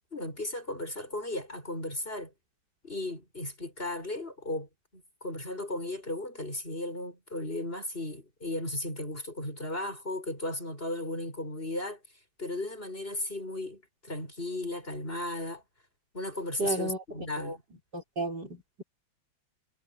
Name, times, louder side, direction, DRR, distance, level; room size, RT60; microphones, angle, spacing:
voice 1, 0.1-2.3 2.8-12.0 12.4-15.6 16.1-17.6, left 1 dB, 25° left, 7.0 m, -35 dB
voice 2, 16.6-17.0 17.4-17.5 17.9-18.8, right 2 dB, 55° right, 6.0 m, -32 dB
omnidirectional pair, 2.2 m